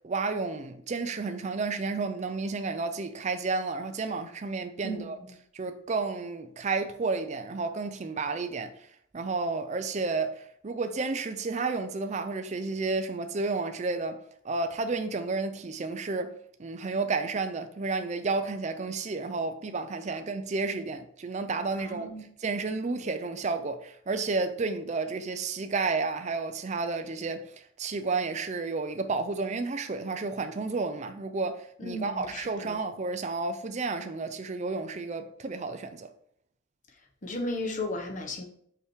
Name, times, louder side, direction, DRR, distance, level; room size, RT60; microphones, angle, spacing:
voice 1, 0.0-5.2 5.5-8.7 9.1-14.2 14.4-16.3 16.6-22.1 22.4-27.5 27.8-36.1, right 3 dB, 35° right, 0.4 m, -31 dB
voice 2, 21.7-22.2 31.8-32.8 37.2-38.4, left 1 dB, 35° left, 1.0 m, -35 dB
5.6 x 4.8 x 4.5 m
head